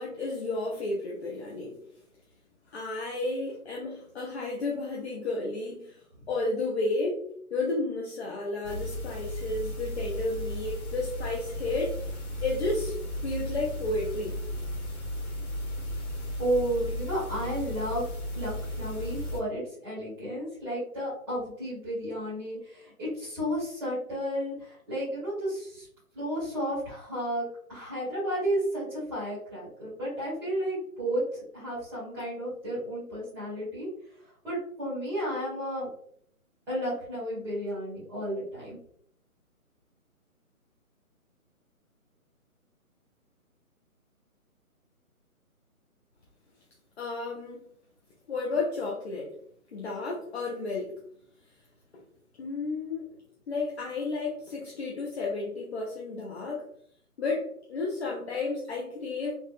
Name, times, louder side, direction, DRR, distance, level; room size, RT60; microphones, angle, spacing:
voice 1, 0.0-1.8 2.7-6.0 6.3-7.2 7.5-12.1 12.4-13.0 13.2-14.4 47.0-47.6 48.3-49.3 49.7-51.0 51.9-52.0 52.4-53.2 53.5-56.7 57.2-59.3, left 3 dB, 45° left, -2 dB, 0.6 m, -32 dB
sound 1, 8.6-19.4, left 1 dB, 75° left, 1.0 m, -35 dB
voice 2, 16.4-18.0 18.3-25.9 26.1-31.2 31.5-33.9 34.4-35.9 36.7-38.8, equal, 5° right, -10 dB, 0.9 m, -32 dB
3.5 x 2.1 x 2.5 m, 0.65 s
figure-of-eight pair, 145°, 44 cm